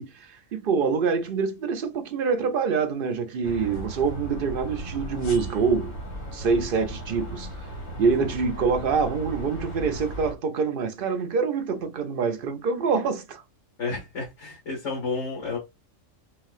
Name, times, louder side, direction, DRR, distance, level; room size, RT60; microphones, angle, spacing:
voice 1, 0.0-6.0 6.3-7.5 8.0-13.4, right 5 dB, 55° right, 0.7 m, -25 dB
sound 1, 3.4-10.3, equal, 80° left, 1.8 m, -36 dB
voice 2, 13.8-15.6, left 4 dB, 60° left, 2.1 m, -31 dB
5.6 x 2.5 x 2.5 m
omnidirectional pair, 1.3 m